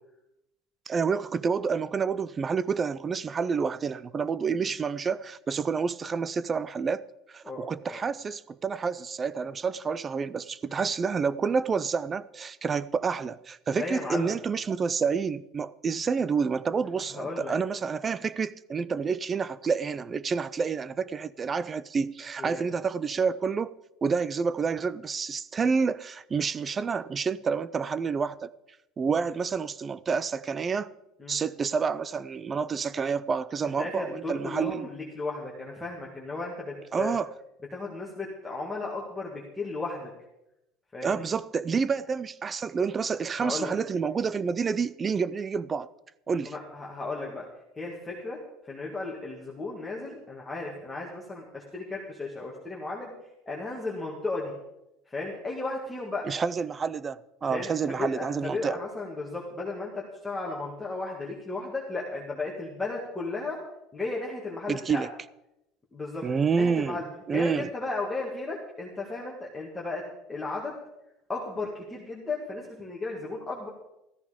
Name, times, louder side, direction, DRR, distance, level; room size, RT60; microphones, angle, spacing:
voice 1, 0.9-7.0 7.3-23.7 24.0-28.5 29.0-30.9 31.3-34.9 36.9-37.3 41.0-45.9 46.3-46.5 56.3-58.8 64.7-65.1 66.2-67.0 67.3-67.7, right 5 dB, 20° right, 0.4 m, -28 dB
voice 2, 7.4-8.0 10.7-10.8 13.7-14.4 17.1-17.5 22.4-22.7 31.2-31.4 33.6-37.2 37.7-40.1 40.9-41.2 43.4-43.7 46.3-47.5 47.8-48.4 48.6-53.1 53.5-54.5 55.1-56.3 57.5-63.6 63.9-65.1 65.9-67.0 67.3-70.0 70.3-70.7 71.3-73.7, left 3 dB, 10° left, 1.9 m, -35 dB
14.5 x 13.5 x 5.0 m
cardioid pair, 180°, 0 cm